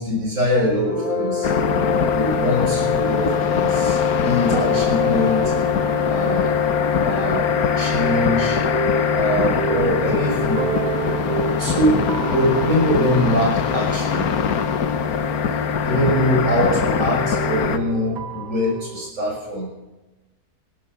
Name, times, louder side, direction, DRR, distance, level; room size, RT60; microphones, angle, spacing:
voice 1, 0.0-1.5 2.1-5.5 6.1-6.5 7.0-7.5 7.8-8.6 9.1-10.6 11.0-14.3 15.8-19.7, equal, 60° right, -1 dB, 6.1 m, -23 dB
sound 1, 0.5-15.6 16.6-19.1, right 4 dB, 75° right, 1.7 m, -30 dB
sound 2, 0.9-9.8, left 9 dB, 30° left, 1.0 m, -25 dB
sound 3, 1.4-17.8, left 6 dB, 85° left, 1.5 m, -23 dB
16.5 x 13.5 x 5.7 m, 1.1 s
omnidirectional pair, 1.5 m